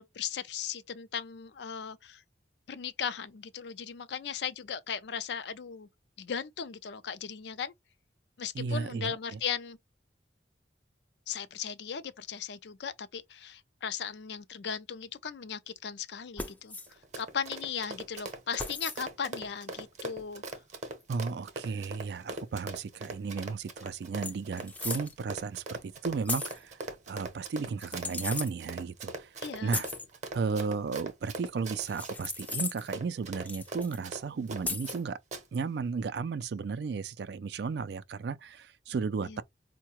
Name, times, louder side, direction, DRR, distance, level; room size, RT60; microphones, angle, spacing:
voice 1, 0.0-2.2 2.7-5.9 6.2-7.7 8.4-9.8 11.3-20.6 29.4-29.8 39.2-39.4, left 7 dB, 70° left, 0.4 m, -37 dB
voice 2, 8.5-9.4 21.1-29.4 29.6-29.9 30.3-35.2 35.5-39.4, right 5 dB, 65° right, 0.3 m, -34 dB
sound 1, 16.4-16.9 18.6-19.0 21.0-21.1 23.4-23.5 23.7-23.8 24.2-25.1 26.3-26.6 27.8-28.5 29.7-30.1 31.8-32.9 33.5-34.0 34.6-35.0, left 3 dB, 10° left, 0.4 m, -36 dB
Run, 16.9-35.0 35.3-35.4, right 3 dB, 40° right, 0.7 m, -41 dB
4.5 x 2.2 x 2.9 m
head